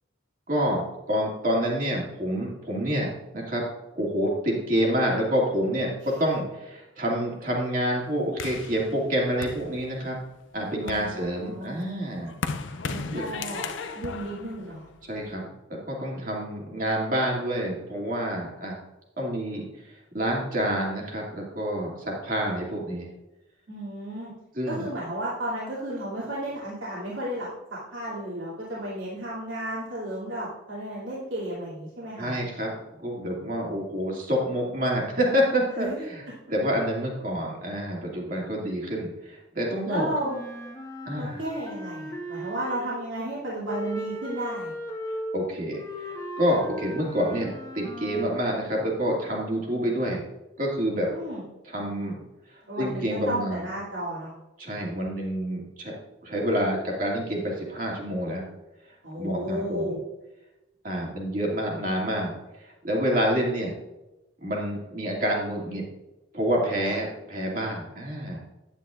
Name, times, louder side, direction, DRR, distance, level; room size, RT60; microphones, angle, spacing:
voice 1, 0.5-0.8 1.1-3.1 3.3-3.6 4.0-10.2 10.5-12.3 13.1-13.2 15.1-15.4 15.9-18.8 19.2-19.7 20.1-23.1 24.6-24.8 32.2-36.2 36.5-40.1 41.1-41.4 45.3-50.2 50.6-51.1 51.6-52.2 52.8-53.7 54.6-55.9 56.2-58.4 59.2-59.9 60.8-62.3 62.8-63.7 64.4-65.9 66.3-68.4, equal, 40° right, -2 dB, 2.3 m, -27 dB
sound 1, 8.4-10.2 10.7-15.3, left 4 dB, 70° left, 0.5 m, -36 dB
voice 2, 10.8-11.8 12.8-13.7 13.9-14.9 23.7-24.3 24.7-32.3 35.8-36.0 39.9-40.4 41.2-44.7 51.1-51.4 52.6-54.3 59.0-60.0 66.8-66.9, right 1 dB, 75° right, -8 dB, 2.7 m, -33 dB
Wind instrument woodwind instrument, 40.2-43.1 43.6-48.5, equal, 15° left, 1.0 m, -37 dB
10.0 x 9.3 x 2.5 m, 1.0 s
head